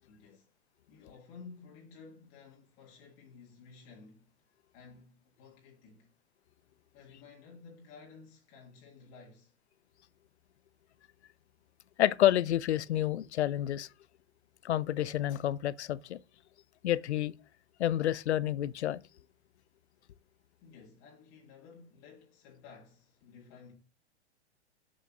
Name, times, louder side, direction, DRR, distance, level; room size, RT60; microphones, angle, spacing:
voice 1, 0.0-0.5 0.9-4.3 4.7-6.1 6.9-9.6 20.6-23.7, left 5 dB, 40° left, 1.9 m, -54 dB
voice 2, 12.0-13.9 14.6-16.2 16.8-17.3 17.8-19.0, left 12 dB, 80° left, 0.5 m, -29 dB
7.2 x 6.9 x 2.4 m
hypercardioid pair, 115°, 33 cm